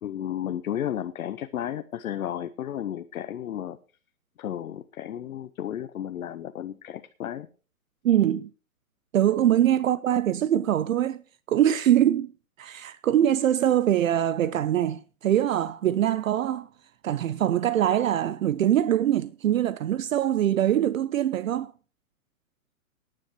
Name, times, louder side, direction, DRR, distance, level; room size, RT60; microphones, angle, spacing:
voice 1, 0.0-3.8 4.4-7.5, left 10 dB, 70° left, 0.8 m, -33 dB
voice 2, 8.0-8.5 9.1-11.2 11.5-12.3 12.6-16.7 17.0-21.7, right 11 dB, 65° right, 0.6 m, -23 dB
18.0 x 9.8 x 3.1 m
hypercardioid pair, 155°, 44 cm